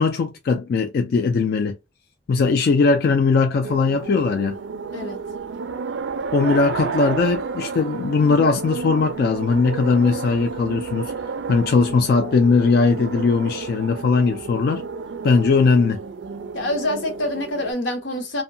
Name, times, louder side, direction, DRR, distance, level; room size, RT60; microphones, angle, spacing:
voice 1, 0.0-1.8 2.3-4.6 6.3-11.1 11.5-14.8 15.2-16.0, left 4 dB, 55° left, 0.3 m, -19 dB
sound 1, 3.6-17.7, right 5 dB, 80° right, 0.4 m, -31 dB
voice 2, 16.5-18.4, left 1 dB, 90° left, 0.8 m, -26 dB
2.6 x 2.1 x 2.6 m
head